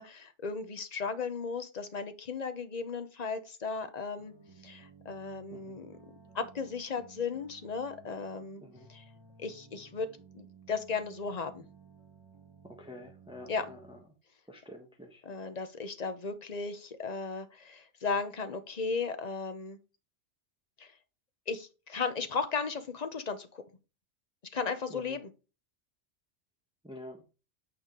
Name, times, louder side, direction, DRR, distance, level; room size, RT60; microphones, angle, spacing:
voice 1, 0.0-4.3 4.6-8.6 8.9-9.0 9.4-10.1 10.3-11.6 13.5-13.7 15.2-19.8 20.8-20.9 21.5-23.6 24.5-25.3, left 5 dB, 40° left, 9 dB, 0.9 m, -36 dB
sound 1, 4.2-14.0, right 5 dB, 25° right, 1.5 m, -56 dB
voice 2, 12.6-14.0 14.5-15.2 24.9-25.2 26.8-27.2, left 1 dB, 5° right, 3 dB, 1.2 m, -48 dB
8.9 x 5.0 x 3.7 m, 0.31 s
omnidirectional pair, 1.2 m